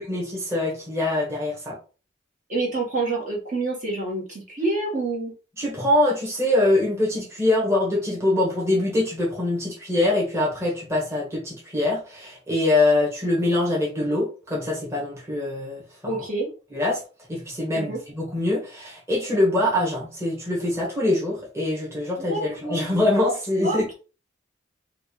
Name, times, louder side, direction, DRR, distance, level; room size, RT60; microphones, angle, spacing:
voice 1, 0.0-1.8 5.6-16.2 16.7-17.0 17.3-23.9, left 2 dB, 15° right, -4 dB, 1.7 m, -24 dB
voice 2, 2.5-5.3 16.0-16.5 17.8-18.0 22.3-22.8 23.6-23.9, right 2 dB, 40° right, -3 dB, 1.9 m, -27 dB
6.0 x 2.6 x 3.3 m, 0.35 s
head